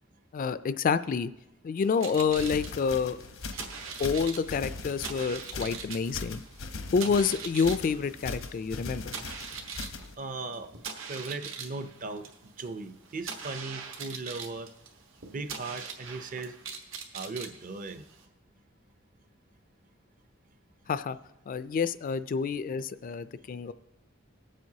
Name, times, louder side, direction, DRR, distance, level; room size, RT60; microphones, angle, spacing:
voice 1, 0.3-1.3 1.6-3.2 4.0-6.4 6.9-9.1 20.9-21.2 21.5-23.7, left 5 dB, 45° left, 13 dB, 0.3 m, -28 dB
sound 1, 1.8-18.3, right 6 dB, 75° right, 1.3 m, -42 dB
sound 2, 2.2-10.1, left 3 dB, 85° left, 0.8 m, -41 dB
voice 2, 10.2-10.7 11.1-12.3 12.6-14.7 15.3-16.6 17.1-18.1, right 3 dB, 40° right, 9 dB, 0.6 m, -38 dB
19.0 x 7.5 x 2.8 m, 0.91 s
head